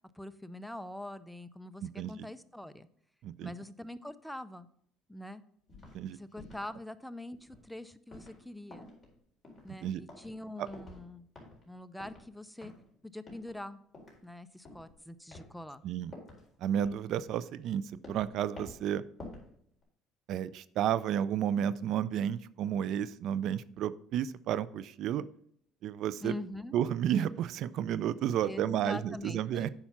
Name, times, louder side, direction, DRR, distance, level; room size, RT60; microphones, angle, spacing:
voice 1, 0.1-2.9 3.4-4.7 5.1-5.4 6.1-8.9 9.6-11.3 11.7-12.7 13.0-13.8 14.2-15.8 26.2-26.8 28.4-29.7, left 1 dB, ahead, 13 dB, 0.5 m, -44 dB
voice 2, 1.8-2.1 3.2-3.5 5.9-6.2 9.8-10.0 10.6-10.7 15.8-16.1 16.6-19.0 20.3-25.3 25.8-26.3 26.7-29.7, right 10 dB, 65° right, 17 dB, 0.4 m, -32 dB
sound 1, 5.7-6.0 6.3-6.7 7.3-7.7 8.1-8.5 8.7-9.2 9.4-9.8 10.1-10.4 10.7-11.1 11.4-11.7 12.0-12.3 12.6-12.9 13.3-13.6 13.9-14.2 14.7-14.9 15.3-15.6 16.1-16.5 16.8-17.7 18.0-18.3 18.6-18.9 19.2-19.5 19.8-19.9, left 2 dB, 20° left, 4.1 m, -50 dB
8.7 x 5.6 x 5.9 m, 0.66 s
cardioid pair, 100°, 0 cm